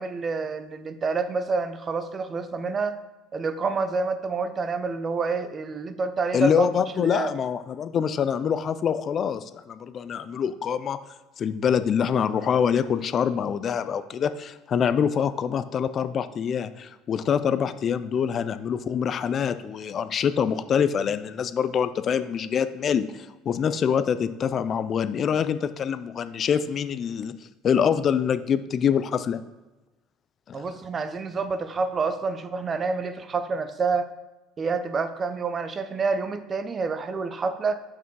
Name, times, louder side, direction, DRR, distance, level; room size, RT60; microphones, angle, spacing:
voice 1, 0.0-3.0 3.3-6.7 7.0-7.3 30.5-34.1 34.6-37.8, right 4 dB, 30° right, 11 dB, 0.6 m, -28 dB
voice 2, 6.3-11.0 11.4-27.4 27.6-29.4 30.5-30.6, left 7 dB, 45° left, 13 dB, 0.4 m, -25 dB
5.7 x 4.6 x 4.7 m, 1.1 s
supercardioid pair, 95°, 0 cm